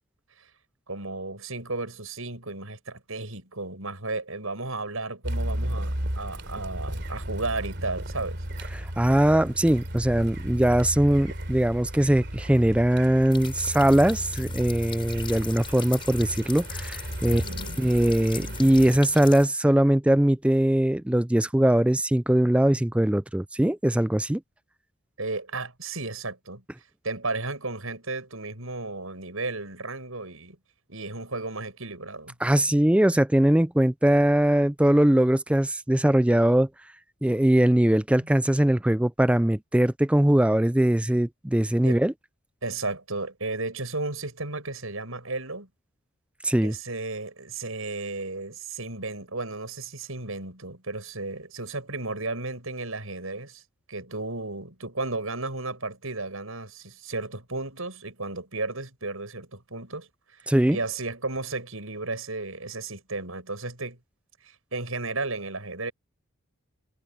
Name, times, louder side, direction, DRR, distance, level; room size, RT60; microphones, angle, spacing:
voice 1, 0.9-8.4 17.3-17.8 25.2-26.6 27.0-30.6 30.9-32.3 38.2-38.3 41.8-42.0 42.6-45.7 46.6-53.6 53.9-60.1 60.4-64.0 64.4-65.9, right 3 dB, 85° right, 6.8 m, -34 dB
Car, 5.2-19.0, right 1 dB, 55° right, 3.4 m, -34 dB
voice 2, 8.7-17.4 17.8-24.4 32.4-36.7 37.2-42.1 46.4-46.7 60.5-60.8, right 1 dB, 5° right, 0.3 m, -21 dB
sound 1, 13.3-19.5, left 6 dB, 25° left, 6.3 m, -40 dB
head